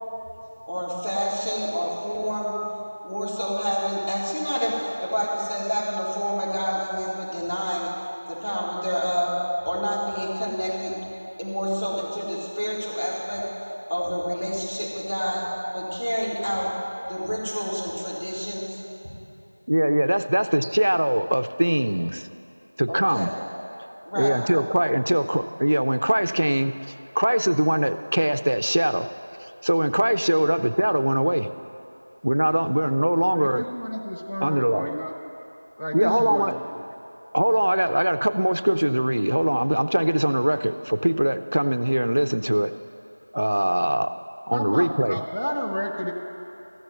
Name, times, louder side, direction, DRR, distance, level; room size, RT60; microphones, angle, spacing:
voice 1, 0.7-2.6 3.0-7.9 8.3-9.3 9.6-10.9 11.4-13.4 13.9-15.4 15.7-16.7 17.1-18.8 22.9-23.3 24.1-24.4 33.2-33.3, equal, 60° left, -5 dB, 3.8 m, -28 dB
voice 2, 19.7-22.3 22.8-23.3 24.2-29.1 29.4-31.5 32.2-33.6 34.4-34.9 35.9-36.6 37.3-42.7 43.3-44.1 44.5-45.2, right 1 dB, 40° right, 10 dB, 0.4 m, -22 dB
voice 3, 33.4-35.1 35.8-36.6 44.5-46.1, equal, 20° left, -4 dB, 0.6 m, -30 dB
14.0 x 7.1 x 9.5 m, 2.9 s
figure-of-eight pair, 180°, 0 cm